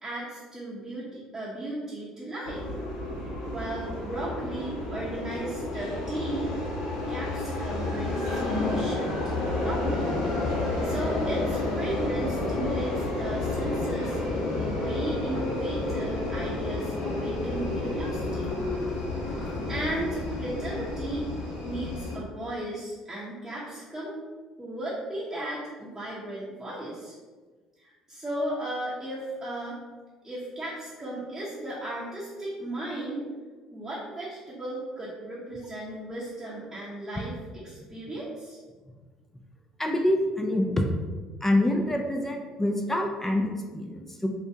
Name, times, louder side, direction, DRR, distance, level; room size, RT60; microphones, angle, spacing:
voice 1, 0.0-2.6 3.5-6.6 7.1-10.1 10.8-14.2 14.5-18.6 19.3-21.3 21.6-24.1 24.6-27.1 27.8-29.8 30.2-33.2 33.7-37.4 37.6-38.6, right 1 dB, 15° right, -9 dB, 0.7 m, -35 dB
sound 1, 2.4-22.2, left 2 dB, 70° left, 0.7 m, -30 dB
voice 2, 39.8-40.8 41.4-44.3, left 1 dB, 15° left, 2 dB, 0.4 m, -26 dB
2.6 x 2.2 x 2.6 m, 1.4 s
hypercardioid pair, 60°, 2 cm